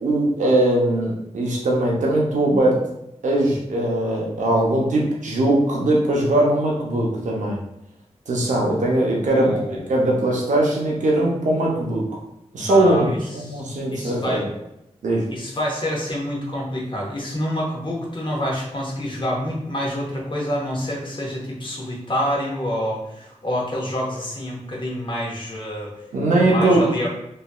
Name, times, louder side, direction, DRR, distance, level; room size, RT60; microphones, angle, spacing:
voice 1, 0.0-2.9 3.2-7.6 8.3-9.6 9.9-12.1 12.5-14.5 15.0-15.3 26.1-26.9, right 1 dB, 90° right, -3 dB, 0.7 m, -20 dB
voice 2, 9.3-10.1 12.6-13.6 13.9-14.5 15.3-25.9 26.4-27.1, equal, 40° left, -3 dB, 1.1 m, -27 dB
3.1 x 2.7 x 2.3 m, 0.83 s
cardioid pair, 50°, 12 cm